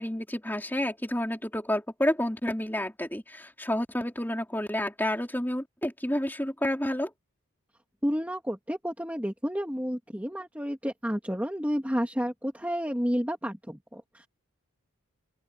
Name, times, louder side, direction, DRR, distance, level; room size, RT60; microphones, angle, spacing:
voice 1, 0.0-7.1, left 1 dB, 10° left, 3.9 m, -30 dB
voice 2, 8.0-14.3, equal, 5° right, 2.4 m, -31 dB
open air
head